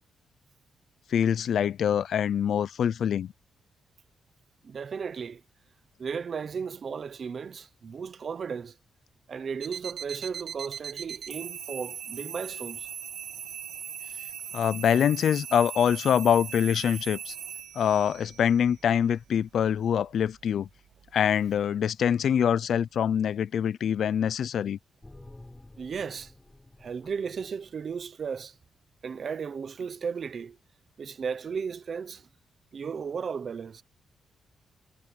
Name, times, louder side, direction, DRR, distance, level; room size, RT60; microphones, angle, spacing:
voice 1, 1.1-3.3 14.5-17.3 17.8-20.7 21.1-24.8, left 8 dB, 60° left, 0.5 m, -25 dB
voice 2, 4.6-5.4 6.0-8.8 9.3-12.9 25.8-26.3 26.8-28.5 29.0-30.6 31.0-32.3 32.7-33.8, right 6 dB, 40° right, 1.0 m, -35 dB
sound 1, 9.6-21.6, right 8 dB, 65° right, 3.2 m, -40 dB
sound 2, 25.0-28.4, left 2 dB, 10° left, 4.7 m, -52 dB
wide cardioid pair, 160°, 0 cm